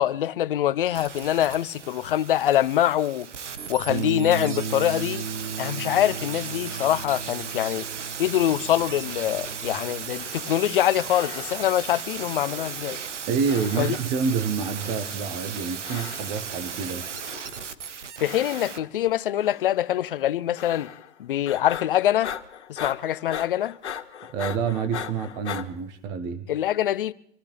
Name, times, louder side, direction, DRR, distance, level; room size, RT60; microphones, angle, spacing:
voice 1, 0.0-3.3 3.7-5.3 5.6-7.9 8.2-13.0 13.8-14.0 18.2-20.9 21.2-22.3 22.7-23.8 26.5-27.1, left 12 dB, 50° left, 0.8 m, -24 dB
sound 1, 0.9-18.8 19.1-19.2, right 7 dB, 80° right, 1.4 m, -36 dB
sound 2, 3.9-10.1, right 5 dB, 60° right, 1.3 m, -35 dB
sound 3, 10.1-10.8 11.1-11.9 12.5-13.2 13.5-14.2 14.8-15.4 15.8-16.5 17.1-17.7 18.2-19.0 19.4-19.9 20.6-21.2 21.5-25.7, left 9 dB, 70° left, 1.9 m, -39 dB
voice 2, 13.3-17.1 24.3-26.4, right 6 dB, 10° right, 0.5 m, -28 dB
26.0 x 14.5 x 3.4 m
hypercardioid pair, 155°, 36 cm